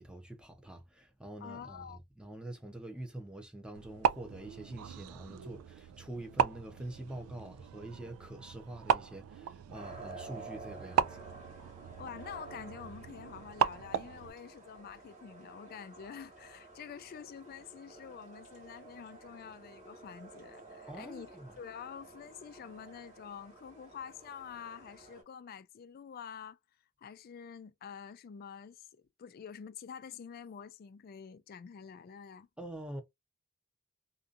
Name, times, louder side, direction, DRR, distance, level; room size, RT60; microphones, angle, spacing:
voice 1, 0.0-11.2 20.9-21.5 32.6-33.0, right 1 dB, 5° right, 0.6 m, -45 dB
voice 2, 1.4-2.0 12.0-21.3 21.6-26.6 27.0-28.9 29.2-32.5, left 7 dB, 45° left, 0.3 m, -47 dB
sound 1, 3.8-14.3, right 8 dB, 85° right, 0.3 m, -36 dB
sound 2, 9.7-25.2, right 3 dB, 35° right, 1.4 m, -52 dB
2.7 x 2.4 x 2.4 m
head